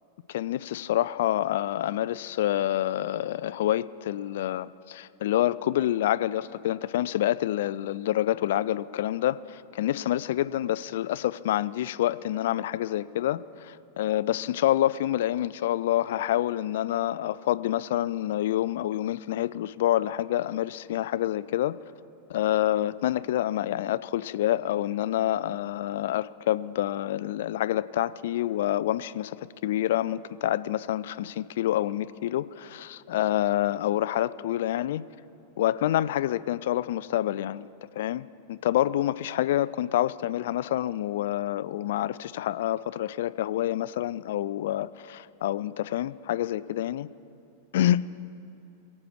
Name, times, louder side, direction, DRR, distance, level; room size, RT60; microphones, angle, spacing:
voice 1, 0.3-21.8 22.3-35.0 35.6-37.7 38.0-47.1 47.7-48.1, left 13 dB, 55° left, 18 dB, 0.3 m, -27 dB
22.5 x 8.6 x 4.7 m, 2.8 s
figure-of-eight pair, 90°, 0 cm